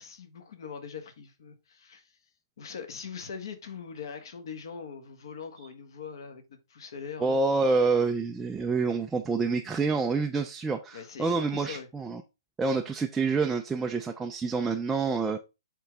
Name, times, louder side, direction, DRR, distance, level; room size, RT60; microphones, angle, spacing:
voice 1, 0.0-2.1 2.6-7.4 10.9-11.9, left 6 dB, 60° left, 1.6 m, -42 dB
voice 2, 7.2-12.2 12.6-15.4, right 4 dB, 5° right, 0.3 m, -27 dB
8.3 x 3.8 x 3.4 m
hypercardioid pair, 165°, 3 cm